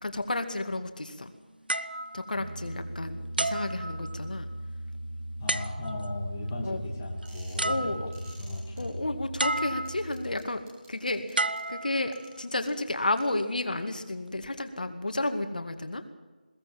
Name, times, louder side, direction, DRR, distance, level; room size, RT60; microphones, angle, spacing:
voice 1, 0.0-1.3 2.1-4.5 6.6-6.8 7.7-8.1 8.8-10.6 10.9-16.0, left 2 dB, 60° left, 7 dB, 2.2 m, -32 dB
sound 1, 1.7-2.9 3.4-4.5 5.5-6.2 7.2-7.3 7.6-8.4 9.4-10.2 11.3-12.5 13.2-13.4, right 2 dB, 85° right, 1.0 m, -32 dB
Piano, 2.3-10.4, right 1 dB, 70° right, 1.7 m, -39 dB
voice 2, 5.4-9.1, left 1 dB, 10° left, -2 dB, 2.6 m, -37 dB
sound 2, 7.2-7.7 8.1-8.8 9.8-11.6 12.1-12.3 12.7-12.8 13.2-13.3, right 1 dB, 10° right, 4.3 m, -53 dB
21.5 x 17.0 x 7.8 m, 1.3 s
figure-of-eight pair, 170°, 5 cm